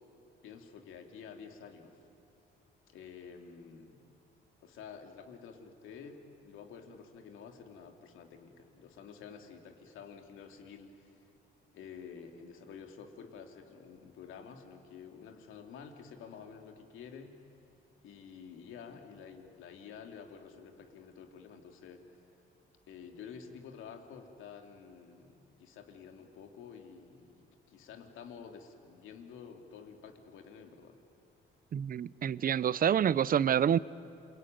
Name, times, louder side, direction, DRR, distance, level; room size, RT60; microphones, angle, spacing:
voice 1, 0.4-2.1 2.9-4.0 4.6-11.3 11.7-17.4 18.0-22.2 22.9-31.0, left 6 dB, 85° left, 4 dB, 2.8 m, -50 dB
voice 2, 31.7-33.8, right 9 dB, 45° right, 19 dB, 0.7 m, -27 dB
28.0 x 22.5 x 9.3 m, 2.7 s
cardioid pair, 90°, 20 cm